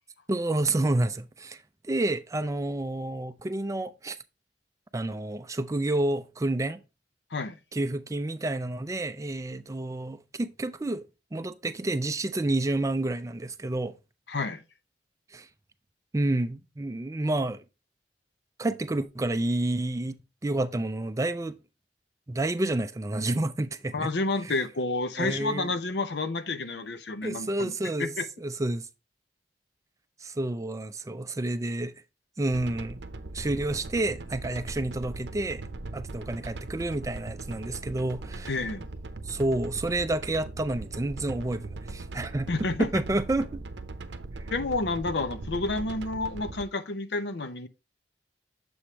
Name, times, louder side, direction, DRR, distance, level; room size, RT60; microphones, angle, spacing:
voice 1, 0.3-1.6 1.9-4.2 4.9-6.8 7.7-11.0 11.3-14.0 15.3-15.5 16.1-17.6 18.6-21.6 22.3-24.1 24.4-24.5 25.2-25.7 27.2-28.9 30.2-32.0 32.4-33.0 33.3-35.6 35.9-38.6 39.3-43.5, right 2 dB, 20° right, 0.4 m, -29 dB
voice 2, 14.3-14.6 23.9-27.7 28.0-28.3 38.5-38.9 42.5-42.9 44.5-47.7, left 3 dB, 70° left, 0.7 m, -30 dB
sound 1, 32.5-46.6, right 2 dB, 80° right, 0.7 m, -40 dB
7.1 x 4.9 x 2.9 m
head